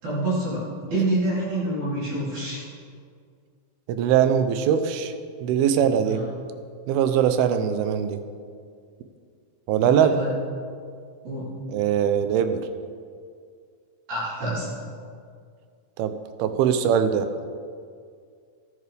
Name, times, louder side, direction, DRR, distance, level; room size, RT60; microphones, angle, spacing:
voice 1, 0.0-0.6 0.9-2.6 6.0-6.3 9.8-10.3 11.2-11.5 14.1-14.7, right 1 dB, 55° right, -9 dB, 4.9 m, -27 dB
voice 2, 3.9-5.1 5.4-6.2 6.9-8.2 9.7-10.1 11.7-12.7 16.0-16.1 16.4-17.3, right 8 dB, 90° right, 9 dB, 2.6 m, -21 dB
14.5 x 12.0 x 3.4 m, 2.2 s
omnidirectional pair, 4.3 m